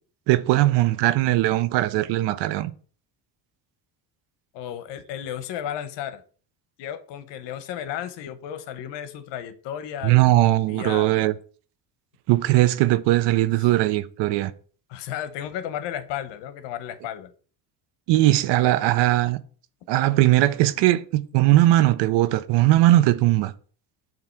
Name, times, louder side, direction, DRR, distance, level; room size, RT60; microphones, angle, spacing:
voice 1, 0.3-2.7 10.0-11.3 12.3-14.5 18.1-19.4 19.9-23.5, right 16 dB, 70° right, 0.6 m, -19 dB
voice 2, 4.5-6.2 6.8-11.1 13.6-13.7 14.9-17.3, left 10 dB, 75° left, 0.9 m, -34 dB
7.5 x 3.0 x 4.4 m
cardioid pair, 105°, 43 cm